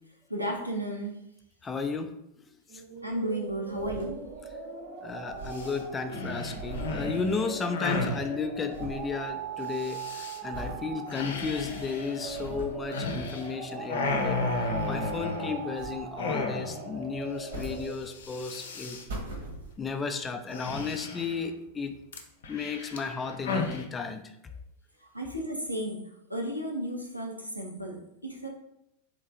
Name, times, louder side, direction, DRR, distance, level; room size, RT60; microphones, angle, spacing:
voice 1, 0.3-1.2 3.0-4.2 25.1-26.0 26.3-28.5, right 1 dB, 90° right, 0 dB, 0.8 m, -33 dB
voice 2, 1.6-2.1 5.0-10.0 10.4-19.0 19.8-22.0 22.5-24.2, left 5 dB, 20° left, 7 dB, 0.4 m, -34 dB
sound 1, 2.7-18.0, right 5 dB, 45° right, 0.6 m, -40 dB
sound 2, 3.5-4.6 4.9-5.0 5.1-7.9 8.2-9.2 9.6-10.0 10.5-10.9 11.4-11.5 12.0-12.9 13.9-15.4 15.7-16.3 17.2-18.4 18.8-20.0 20.6-20.7, right 2 dB, 60° right, 1.3 m, -42 dB
sound 3, 5.5-5.7 6.1-8.2 9.8-10.4 11.1-13.5 13.8-15.8 16.2-16.9 17.2-17.3 17.6-17.9 18.1-19.0 20.5-21.4 22.1-23.8, left 3 dB, 60° left, 0.6 m, -34 dB
3.9 x 3.2 x 3.6 m, 0.81 s
figure-of-eight pair, 90°, 0 cm